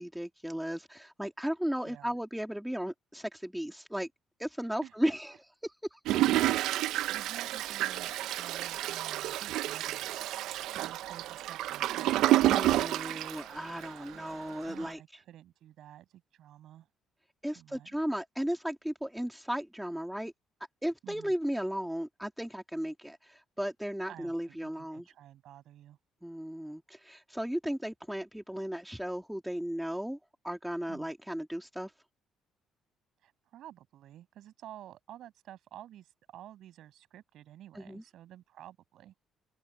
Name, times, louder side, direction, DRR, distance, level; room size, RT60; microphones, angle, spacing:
voice 1, 0.0-4.1 4.4-5.3 5.9-6.0 12.4-15.0 17.4-20.3 20.8-25.1 26.2-30.2 30.4-31.9 37.7-38.0, equal, ahead, 2.1 m, -35 dB
voice 2, 4.8-5.1 7.1-10.1 10.8-12.8 14.6-16.9 17.4-17.9 21.0-21.3 24.1-26.0 30.9-31.1 33.2-39.1, right 12 dB, 65° right, 7.4 m, -51 dB
Toilet flush, 6.1-14.1 14.6-14.7 14.8-14.9, right 15 dB, 80° right, 0.5 m, -29 dB
open air
cardioid pair, 135°, 0 cm